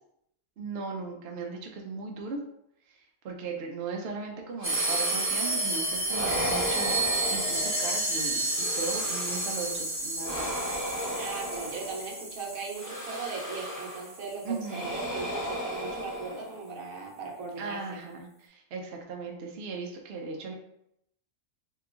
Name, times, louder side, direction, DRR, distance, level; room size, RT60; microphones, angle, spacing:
voice 1, 0.6-2.4 2.9-3.0 3.2-10.5 14.4-14.8 17.6-20.5, right 4 dB, 60° right, 1 dB, 0.7 m, -37 dB
sound 1, 4.6-5.7 6.1-8.1 8.5-9.7 10.2-12.2 12.8-14.2 14.6-16.8, equal, 20° left, 0.6 m, -35 dB
sound 2, 4.6-14.4, right 2 dB, 10° right, 0.9 m, -31 dB
voice 2, 11.1-18.0, right 4 dB, 80° right, -1 dB, 1.2 m, -38 dB
2.8 x 2.3 x 3.6 m, 0.75 s
omnidirectional pair, 1.4 m